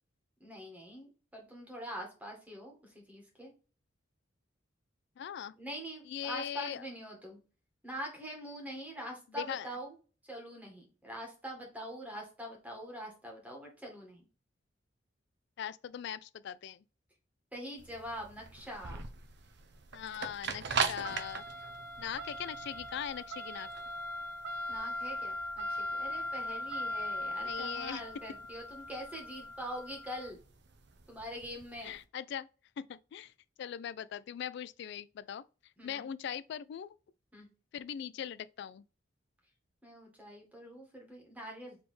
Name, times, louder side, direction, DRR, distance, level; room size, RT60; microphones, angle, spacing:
voice 1, 0.4-3.5 5.6-7.4 7.8-9.9 10.2-14.2 17.5-19.0 24.7-30.4 31.1-31.9 35.8-36.1 37.3-37.5 39.8-41.8, equal, 10° right, 1.7 m, -44 dB
voice 2, 5.2-5.6 6.1-6.9 9.4-9.7 15.6-16.8 19.9-21.4 22.0-23.7 27.4-28.0 31.8-32.5 32.8-33.3 33.6-35.4 35.8-37.0 37.7-38.8, left 9 dB, 65° left, 0.3 m, -40 dB
sound 1, 17.8-31.9, right 1 dB, 65° right, 0.6 m, -38 dB
4.1 x 3.4 x 3.2 m
head